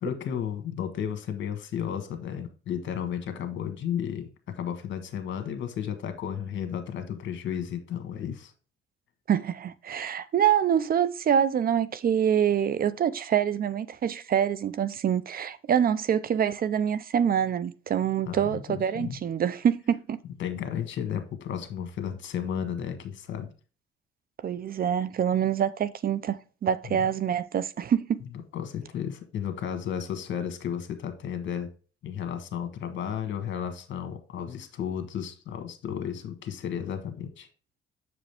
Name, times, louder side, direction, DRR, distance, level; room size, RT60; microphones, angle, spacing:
voice 1, 0.0-8.5 18.2-19.2 20.4-23.5 28.5-31.7 32.0-37.5, left 8 dB, 70° left, 1.4 m, -33 dB
voice 2, 9.3-20.2 24.4-28.2, right 9 dB, 50° right, 0.5 m, -25 dB
7.4 x 5.0 x 3.4 m
cardioid pair, 90°, 20 cm